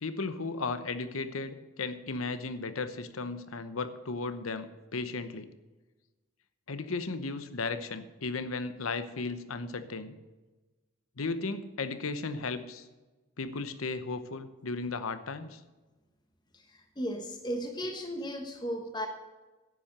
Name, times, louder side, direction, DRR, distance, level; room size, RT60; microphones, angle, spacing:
voice 1, 0.0-5.5 6.7-10.2 11.2-12.9 13.4-15.6, left 3 dB, 85° left, 11 dB, 0.9 m, -35 dB
voice 2, 17.0-19.1, equal, 20° left, 4 dB, 1.1 m, -35 dB
10.5 x 8.9 x 6.6 m, 1.2 s
head